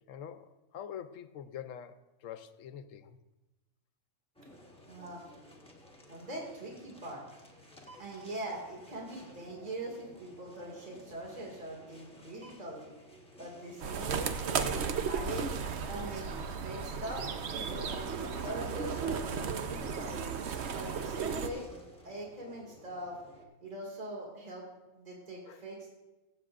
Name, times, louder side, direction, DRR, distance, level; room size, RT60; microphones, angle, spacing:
voice 1, 0.1-3.2 25.4-25.6, left 9 dB, 75° left, 11 dB, 1.0 m, -45 dB
sound 1, 4.3-23.4, left 1 dB, 5° left, 1.2 m, -54 dB
voice 2, 4.9-5.3 6.1-7.2 8.0-12.9 13.4-14.3 15.0-15.5 15.8-20.3 20.7-21.7 22.0-23.2 23.6-24.7 24.9-25.9, right 1 dB, 30° right, -2 dB, 2.2 m, -42 dB
sound 2, 13.8-21.5, right 6 dB, 60° right, 0.9 m, -35 dB
22.5 x 7.6 x 2.5 m, 1.1 s
omnidirectional pair, 1.4 m